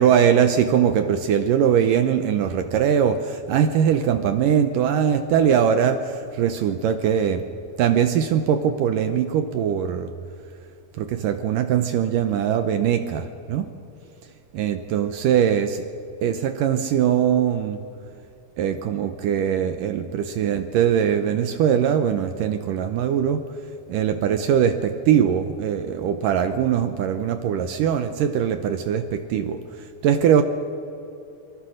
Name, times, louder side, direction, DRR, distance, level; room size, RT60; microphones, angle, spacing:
voice 1, 0.0-7.4 7.8-10.1 11.0-13.7 14.5-15.8 16.2-17.8 18.6-23.4 23.9-29.6 30.0-30.4, right 8 dB, 75° right, 8 dB, 2.0 m, -21 dB
29.0 x 23.0 x 6.5 m, 2.8 s
omnidirectional pair, 4.8 m